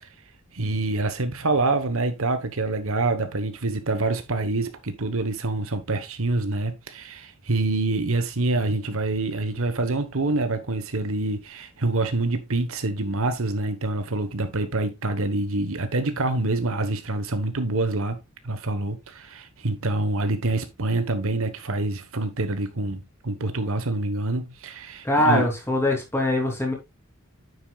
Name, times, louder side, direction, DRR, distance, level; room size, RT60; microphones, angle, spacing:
voice 1, 0.5-25.4, right 2 dB, 65° right, 1.2 m, -26 dB
voice 2, 25.0-26.7, left 1 dB, 10° left, 3.2 m, -22 dB
9.6 x 8.1 x 2.4 m
head